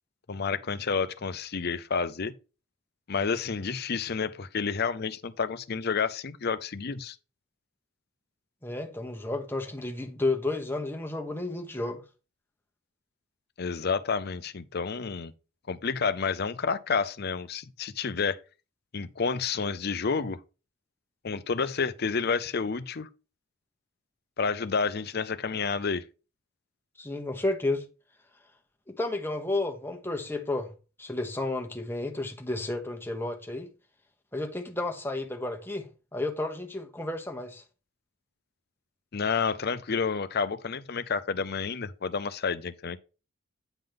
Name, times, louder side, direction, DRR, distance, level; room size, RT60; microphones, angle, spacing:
voice 1, 0.3-2.3 3.1-7.2 13.6-15.3 15.7-18.4 18.9-20.4 21.2-23.1 24.4-26.0 39.1-43.0, left 5 dB, 50° left, 0.6 m, -30 dB
voice 2, 8.6-12.0 27.0-27.8 28.9-30.7 31.0-33.7 34.3-37.6, left 2 dB, 10° left, 1.2 m, -32 dB
9.1 x 3.8 x 5.2 m
head